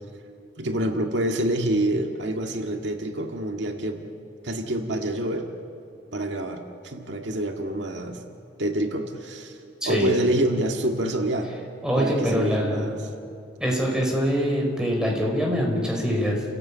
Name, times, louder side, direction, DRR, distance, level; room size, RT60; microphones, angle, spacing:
voice 1, 0.6-4.1 4.4-5.5 6.1-8.2 8.6-9.6 9.9-11.6 12.0-13.0, right 1 dB, 80° right, 3 dB, 1.9 m, -27 dB
voice 2, 11.8-12.9 13.6-16.4, equal, 5° right, -1 dB, 4.8 m, -24 dB
29.5 x 17.5 x 8.7 m, 2.5 s
head